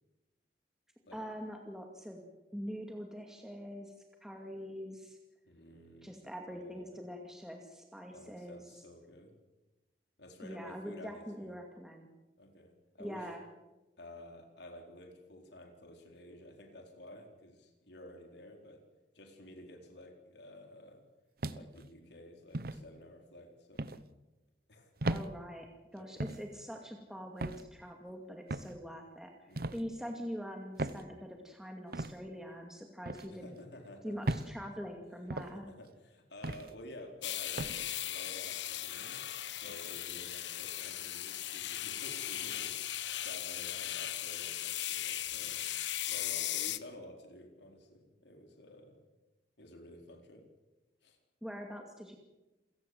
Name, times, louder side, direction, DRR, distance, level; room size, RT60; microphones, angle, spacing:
voice 1, 1.1-2.2 2.5-3.9 4.2-5.2 6.0-8.8 10.4-12.1 13.0-13.4 25.1-25.7 25.9-33.6 34.0-35.7 51.4-52.2, equal, 5° right, 2 dB, 2.4 m, -44 dB
voice 2, 5.4-6.2 6.5-7.0 8.1-9.4 10.2-11.5 12.4-13.3 14.0-18.8 19.1-21.0 21.5-23.9 24.7-24.9 25.9-26.1 29.5-29.8 33.3-34.2 35.4-39.2 39.5-45.7 46.1-49.0 49.6-50.5 51.0-51.2, left 1 dB, 70° left, 3 dB, 4.2 m, -52 dB
sound 1, 21.4-21.9 22.5-22.8 23.8-24.0 25.0-25.3 26.2-26.4 27.4-27.7 28.5-28.8 29.6-29.8 30.8-31.0 31.9-32.1 33.1-33.3 34.3-34.5 35.3-35.5 36.4-36.7 37.6-37.8, right 2 dB, 55° right, 0.9 m, -36 dB
sound 2, 37.2-46.8, left 13 dB, 85° left, 1.1 m, -38 dB
28.5 x 17.0 x 7.9 m, 1.1 s
head